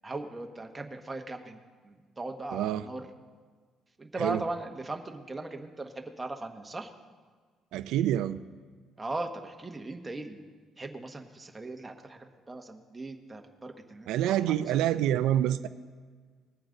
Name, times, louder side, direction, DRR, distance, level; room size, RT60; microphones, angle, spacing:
voice 1, 0.0-1.6 1.8-3.1 4.0-6.9 9.0-10.4 10.8-14.8, right 2 dB, 15° right, 4 dB, 1.1 m, -38 dB
voice 2, 2.5-2.8 4.2-4.4 7.7-8.4 14.1-15.7, right 12 dB, 85° right, 11 dB, 0.4 m, -27 dB
20.5 x 8.7 x 3.9 m, 1.5 s
cardioid pair, 130°, 0 cm